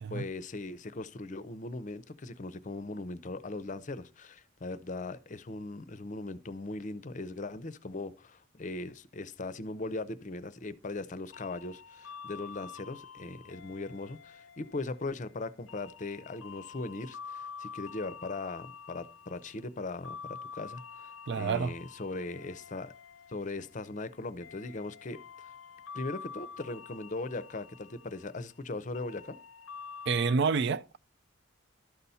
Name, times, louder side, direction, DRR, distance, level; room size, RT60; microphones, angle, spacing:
voice 1, 0.1-22.9 23.3-25.5 25.9-29.4, left 2 dB, 35° left, 0.6 m, -39 dB
sound 1, 11.3-30.4, left 6 dB, 80° left, 0.6 m, -48 dB
voice 2, 21.3-21.7 30.1-31.0, right 5 dB, 55° right, 0.4 m, -28 dB
12.0 x 4.1 x 5.5 m
head